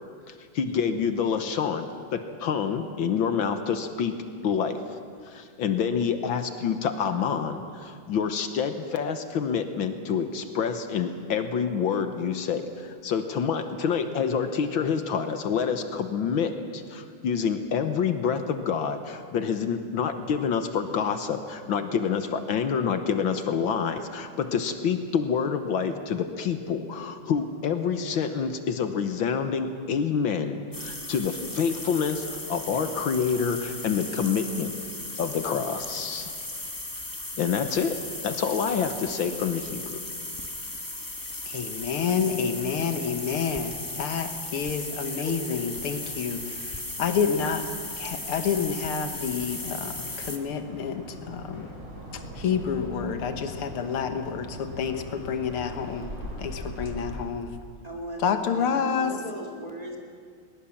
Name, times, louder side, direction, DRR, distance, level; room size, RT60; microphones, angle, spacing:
voice 1, 0.3-4.8 5.3-34.7 35.2-36.3 37.4-38.0 38.2-40.0, left 6 dB, 70° left, 8 dB, 1.8 m, -27 dB
sound 1, 30.7-50.4, left 2 dB, 10° left, 1.1 m, -36 dB
voice 2, 41.4-47.7 48.0-51.7 52.1-57.6 58.2-59.1, left 6 dB, 85° left, 8 dB, 2.2 m, -29 dB
voice 3, 45.2-45.6 57.8-60.0, equal, 20° right, 1 dB, 2.5 m, -38 dB
sound 2, 45.7-57.3, equal, 40° right, 6.4 m, -42 dB
20.5 x 20.0 x 7.2 m, 2.1 s
omnidirectional pair, 2.3 m